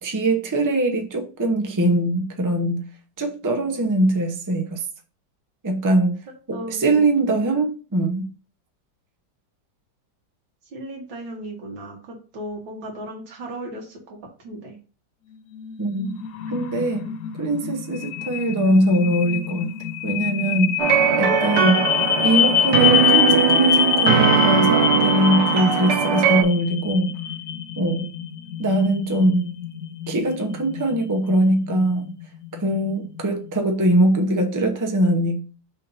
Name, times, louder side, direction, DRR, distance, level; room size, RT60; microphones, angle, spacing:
voice 1, 0.0-2.8 3.2-4.8 5.6-6.2 6.5-8.3 15.8-16.2 16.5-17.1 17.4-19.7 20.0-20.7 21.2-21.9 22.2-27.1 27.7-28.1 28.6-29.5 30.1-32.1 32.5-35.4, right 1 dB, 30° right, 0.3 m, -22 dB
voice 2, 6.5-7.0 7.5-7.6 10.7-14.8, right 1 dB, 85° right, 2.3 m, -36 dB
sound 1, 15.5-33.6, left 9 dB, 70° left, 1.1 m, -26 dB
sound 2, 20.8-26.4, right 7 dB, 65° right, 1.6 m, -19 dB
6.4 x 2.7 x 5.5 m
omnidirectional pair, 2.0 m